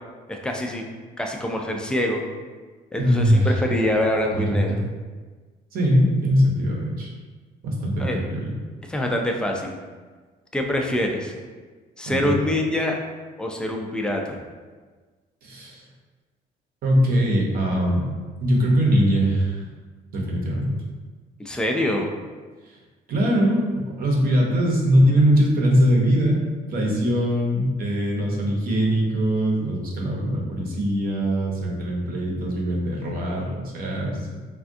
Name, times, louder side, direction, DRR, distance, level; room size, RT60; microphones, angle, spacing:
voice 1, 0.3-0.8 1.2-2.2 2.9-4.9 8.0-8.2 8.9-9.8 10.5-11.3 12.0-12.9 13.4-14.4 21.4-22.1, left 1 dB, 5° left, 1 dB, 0.3 m, -25 dB
voice 2, 3.0-3.6 4.3-4.8 5.7-7.1 7.6-8.5 12.1-12.4 15.4-15.8 16.8-18.0 18.4-19.6 20.1-20.8 23.1-26.4 26.7-34.4, equal, 60° right, -1 dB, 0.8 m, -21 dB
3.4 x 2.3 x 2.5 m, 1.4 s
cardioid pair, 110°, 17 cm